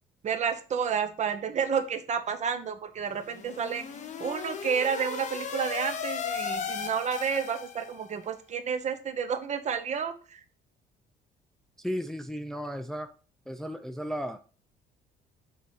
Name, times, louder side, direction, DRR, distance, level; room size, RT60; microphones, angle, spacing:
voice 1, 0.2-3.8 4.2-10.4, right 7 dB, 45° right, 9 dB, 1.0 m, -30 dB
sound 1, 3.1-8.1, left 7 dB, 45° left, 1.0 m, -36 dB
voice 2, 11.8-13.1 13.5-14.4, equal, ahead, 7 dB, 0.5 m, -34 dB
6.2 x 4.2 x 4.8 m, 0.36 s
cardioid pair, 110°, 17 cm